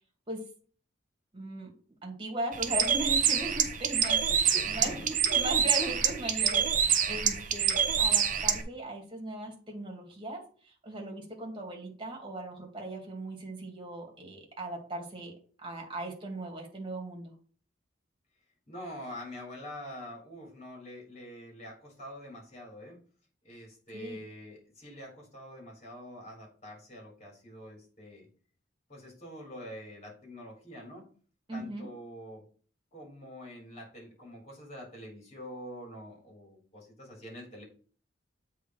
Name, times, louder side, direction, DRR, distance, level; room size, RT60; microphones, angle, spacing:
voice 1, 1.3-1.7 2.0-17.3 23.9-24.2 31.5-31.9, right 1 dB, 25° right, 1 dB, 2.1 m, -38 dB
Bird, 2.5-8.6, right 8 dB, 45° right, 0.8 m, -26 dB
voice 2, 4.2-5.1 18.7-23.0 23.4-28.3 28.9-31.1 31.5-32.4 32.9-37.6, equal, 35° left, -1 dB, 3.8 m, -45 dB
8.2 x 3.7 x 4.6 m, 0.42 s
head